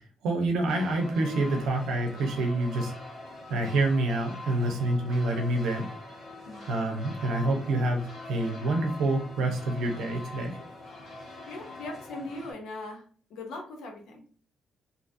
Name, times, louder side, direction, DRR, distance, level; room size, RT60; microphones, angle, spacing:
voice 1, 0.2-2.9 3.5-5.9 6.7-10.6, right 2 dB, 80° right, 3 dB, 0.7 m, -27 dB
sound 1, 0.7-12.5, left 2 dB, 60° left, 1.3 m, -43 dB
voice 2, 6.5-6.8 11.5-13.0 13.3-14.2, left 2 dB, 80° left, 3 dB, 0.8 m, -40 dB
2.8 x 2.4 x 2.7 m, 0.44 s
cardioid pair, 90°, 0 cm